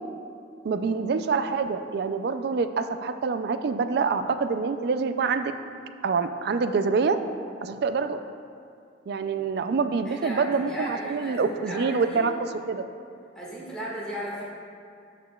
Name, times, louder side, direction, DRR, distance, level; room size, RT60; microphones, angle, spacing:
voice 1, 0.6-5.5 6.0-7.2 7.6-8.2 9.1-12.3 12.7-12.8, right 5 dB, 55° right, 9 dB, 0.3 m, -26 dB
voice 2, 10.0-12.2 13.3-14.4, equal, 5° left, -8 dB, 1.6 m, -36 dB
13.0 x 5.0 x 2.3 m, 2.4 s
head